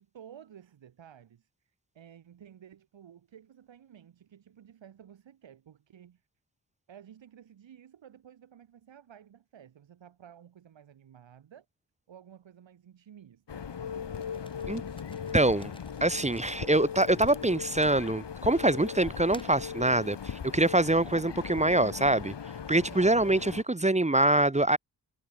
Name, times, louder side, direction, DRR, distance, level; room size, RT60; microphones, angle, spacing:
voice 1, 0.0-6.2 6.9-11.7 12.1-13.7 22.9-23.5, right 9 dB, 85° right, 3.6 m, -53 dB
sound 1, 13.5-23.6, left 7 dB, 70° left, 4.2 m, -39 dB
sound 2, 14.1-18.4 19.0-19.7, left 1 dB, 10° left, 5.2 m, -53 dB
voice 2, 15.3-15.7 16.0-22.3 22.7-24.8, right 2 dB, 15° right, 1.1 m, -25 dB
cardioid pair, 50°, 44 cm